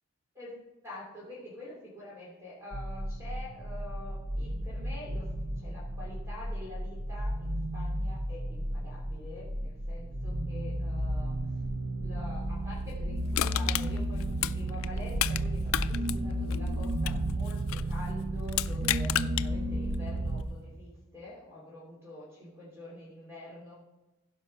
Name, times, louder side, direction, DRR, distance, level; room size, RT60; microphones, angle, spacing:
voice 1, 0.3-11.3 12.0-23.7, left 1 dB, 15° right, -6 dB, 3.0 m, -46 dB
sound 1, 2.7-20.4, right 1 dB, 80° right, 0.9 m, -33 dB
Crushing, 13.3-15.4 15.7-17.9 18.5-19.5 19.9-20.0, left 13 dB, 80° left, 0.4 m, -31 dB
15.5 x 5.5 x 5.5 m, 1.1 s
head